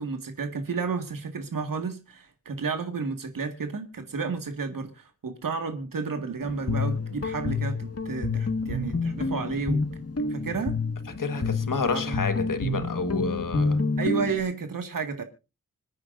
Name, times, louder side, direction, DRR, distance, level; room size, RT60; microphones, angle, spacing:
voice 1, 0.0-9.8 10.3-10.8 11.3-12.2 14.0-15.2, right 5 dB, 85° right, 1.9 m, -32 dB
Guitar, 6.4-14.4, left 3 dB, 50° left, 1.8 m, -28 dB
voice 2, 11.1-13.8, left 4 dB, 75° left, 1.6 m, -29 dB
27.0 x 9.6 x 2.6 m
wide cardioid pair, 100°, 32 cm